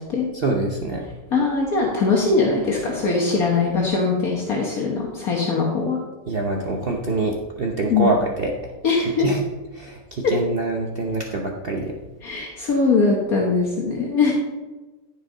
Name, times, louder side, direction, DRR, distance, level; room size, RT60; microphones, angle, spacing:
voice 1, 0.3-1.0 6.3-8.7 9.2-9.4 9.7-11.9, right 2 dB, 45° right, 0 dB, 0.9 m, -25 dB
voice 2, 1.3-6.0 7.9-8.1 8.8-9.3 12.2-14.3, left 4 dB, 65° left, -2 dB, 1.7 m, -21 dB
14.0 x 5.3 x 3.9 m, 1.2 s
omnidirectional pair, 1.7 m